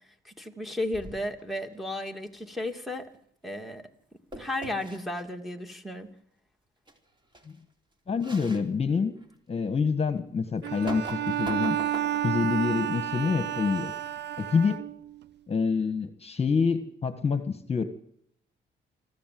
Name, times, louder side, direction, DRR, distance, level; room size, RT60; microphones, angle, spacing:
voice 1, 0.2-3.1 3.4-3.8 4.3-6.1, left 1 dB, ahead, 2 dB, 2.7 m, -34 dB
sound 1, 0.9-1.4 4.3-5.0 6.9-7.0 7.3-7.5 8.2-8.6 9.2-9.3 10.6-12.4, right 1 dB, 25° right, 4.0 m, -40 dB
voice 2, 8.1-9.2 9.5-11.8 12.2-13.9 14.4-14.8 15.5-17.8, left 5 dB, 30° left, 10 dB, 1.7 m, -27 dB
Bowed string instrument, 10.6-15.2, right 11 dB, 60° right, 0.8 m, -31 dB
24.5 x 15.0 x 7.8 m, 0.71 s
cardioid pair, 90°, 20 cm